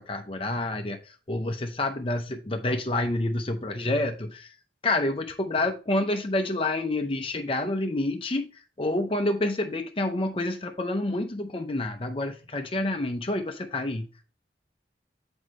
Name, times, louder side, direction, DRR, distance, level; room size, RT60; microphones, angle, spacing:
voice 1, 0.0-4.5 4.8-14.2, left 2 dB, 30° left, 5 dB, 0.7 m, -28 dB
8.1 x 5.2 x 3.1 m, 0.35 s
head